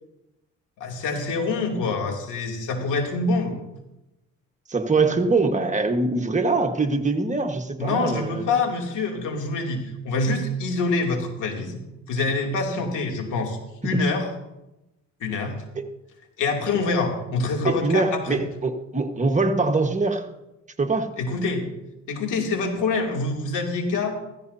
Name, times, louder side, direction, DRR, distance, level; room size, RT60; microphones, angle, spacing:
voice 1, 0.8-3.6 7.8-11.8 12.1-13.6 13.8-14.3 15.2-15.5 16.4-18.4 21.2-21.7 22.1-24.1, left 3 dB, 85° left, 1 dB, 2.8 m, -25 dB
voice 2, 4.7-8.4 17.6-20.3 20.8-21.1, right 3 dB, 25° right, 5 dB, 1.4 m, -23 dB
15.5 x 15.5 x 2.8 m, 0.93 s
cardioid pair, 90°, 30 cm